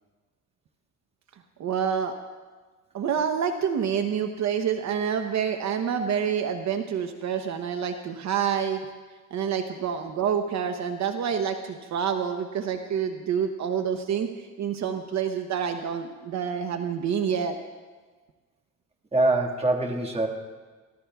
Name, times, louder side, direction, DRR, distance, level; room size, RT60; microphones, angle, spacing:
voice 1, 1.6-2.1 2.9-8.8 9.3-14.3 14.6-17.6, right 7 dB, 65° right, 7 dB, 0.9 m, -27 dB
voice 2, 19.1-20.3, right 2 dB, 20° right, 2 dB, 1.7 m, -23 dB
24.5 x 15.5 x 2.3 m, 1.4 s
cardioid pair, 90°, 30 cm